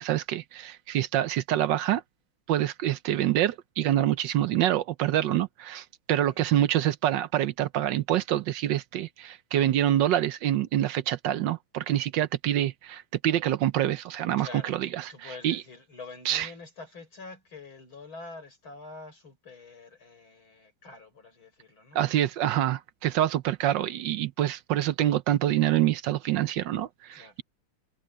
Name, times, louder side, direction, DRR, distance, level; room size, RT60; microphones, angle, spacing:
voice 1, 0.0-2.0 2.5-15.6 16.3-16.5 21.9-27.4, right 12 dB, 65° right, 1.2 m, -26 dB
voice 2, 14.4-22.1 27.1-27.4, left 3 dB, 65° left, 6.9 m, -46 dB
omnidirectional pair, 2.4 m